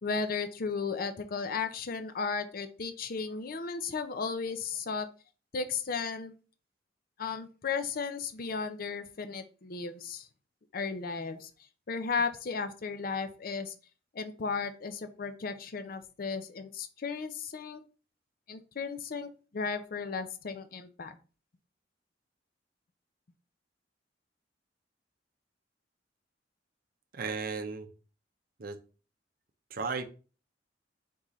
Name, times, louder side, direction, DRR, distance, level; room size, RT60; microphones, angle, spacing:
voice 1, 0.0-5.1 5.5-6.3 7.2-10.3 10.7-11.5 11.9-13.7 14.1-17.8 18.5-21.2, left 5 dB, 55° left, 0.5 m, -35 dB
voice 2, 27.1-27.9 28.6-28.8 29.7-30.0, right 4 dB, 55° right, 0.6 m, -34 dB
4.1 x 3.7 x 3.1 m
head